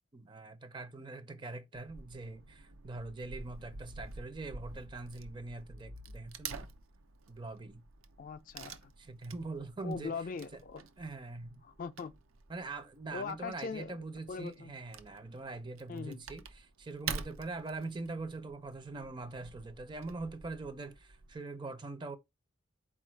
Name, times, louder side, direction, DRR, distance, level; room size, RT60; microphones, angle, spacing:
voice 1, 0.1-6.7 7.3-7.8 9.0-10.1 11.0-11.6 12.5-22.2, right 3 dB, 25° right, 0.5 m, -43 dB
Wood / Tearing, 1.8-21.4, right 5 dB, 85° right, 0.5 m, -48 dB
voice 2, 8.2-8.9 9.8-10.8 11.6-12.1 13.1-14.0 14.3-14.7 15.9-16.2, left 5 dB, 40° left, 0.3 m, -41 dB
4.4 x 2.4 x 4.4 m
head